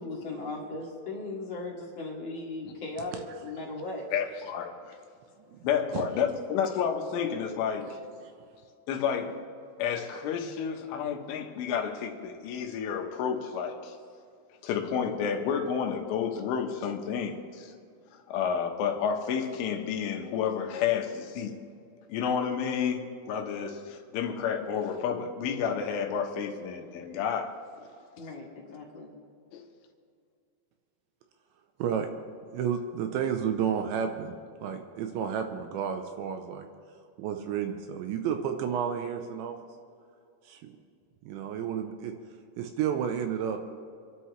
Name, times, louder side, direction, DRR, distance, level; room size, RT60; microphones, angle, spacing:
voice 1, 0.0-4.0 28.2-29.1, left 2 dB, 40° left, -5 dB, 2.8 m, -37 dB
voice 2, 4.1-5.0 5.6-8.0 8.9-9.3 9.8-14.0 14.6-17.7 18.3-21.5 22.1-27.5 29.5-29.6, left 7 dB, 80° left, 3 dB, 3.6 m, -30 dB
voice 3, 32.5-34.3 34.6-36.7 37.2-39.6 40.5-40.7 41.2-42.1 42.6-43.6, right 8 dB, 80° right, 6 dB, 2.8 m, -31 dB
27.5 x 11.5 x 3.2 m, 2.3 s
omnidirectional pair, 5.6 m